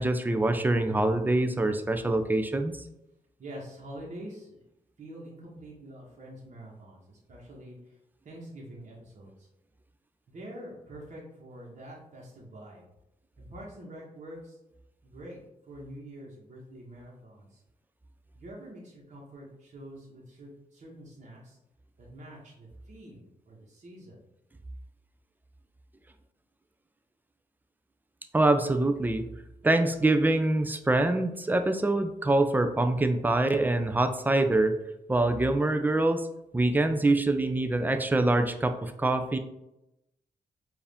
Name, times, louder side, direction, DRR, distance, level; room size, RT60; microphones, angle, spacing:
voice 1, 0.0-2.7 28.3-29.2 29.6-34.8 35.1-36.3 36.5-39.4, right 2 dB, 10° right, 7 dB, 0.4 m, -25 dB
voice 2, 3.4-4.6 5.0-7.8 8.2-9.3 10.3-12.8 13.4-14.6 15.0-15.4 15.7-17.6 18.3-21.6 22.0-24.2, right 1 dB, 50° right, -4 dB, 1.3 m, -46 dB
4.7 x 2.6 x 3.5 m, 0.88 s
cardioid pair, 80°, 15 cm